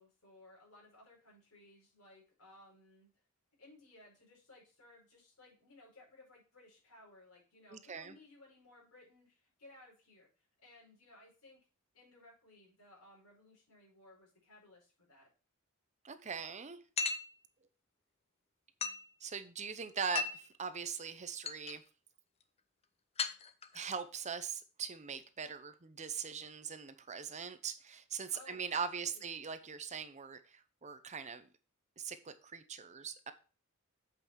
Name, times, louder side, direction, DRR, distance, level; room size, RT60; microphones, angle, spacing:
voice 1, 0.0-3.1 3.6-11.6 11.9-15.3 28.3-29.3, left 2 dB, 75° left, -2 dB, 4.9 m, -60 dB
voice 2, 7.7-8.2 16.0-16.8 19.2-21.8 23.7-31.5 32.0-33.3, right 6 dB, 30° right, 11 dB, 0.7 m, -41 dB
sound 1, 17.0-17.3 18.8-19.1 20.1-20.5 21.1-21.2 21.5-21.7 23.2-23.9, left 5 dB, 30° left, 0.6 m, -36 dB
7.9 x 5.4 x 4.6 m, 0.36 s
head